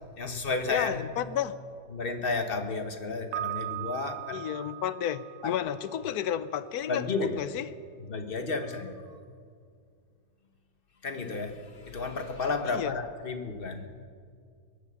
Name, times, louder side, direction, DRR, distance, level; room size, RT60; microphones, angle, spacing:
voice 1, 0.2-1.0 1.9-4.4 5.4-5.5 6.9-7.4 8.0-8.9 11.0-13.8, left 4 dB, 35° left, 6 dB, 1.1 m, -32 dB
voice 2, 0.7-1.5 4.3-7.7 12.7-13.0, left 10 dB, 70° left, 14 dB, 1.0 m, -32 dB
Piano, 3.3-6.2, right 15 dB, 75° right, 1.2 m, -38 dB
23.0 x 8.6 x 6.9 m, 2.2 s
omnidirectional pair, 2.0 m